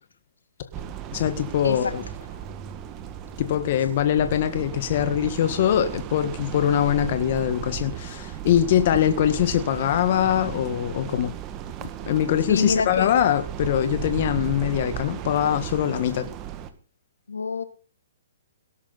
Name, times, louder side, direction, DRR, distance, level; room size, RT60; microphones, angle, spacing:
sound 1, 0.7-16.7, right 9 dB, 30° right, 1.9 m, -35 dB
voice 1, 1.1-2.0 3.4-11.3 12.1-16.3, left 10 dB, 50° left, 1.6 m, -23 dB
voice 2, 1.6-2.0 12.5-13.1 17.3-17.6, left 4 dB, 85° left, 2.4 m, -26 dB
18.0 x 12.5 x 4.1 m
hypercardioid pair, 135°, 0 cm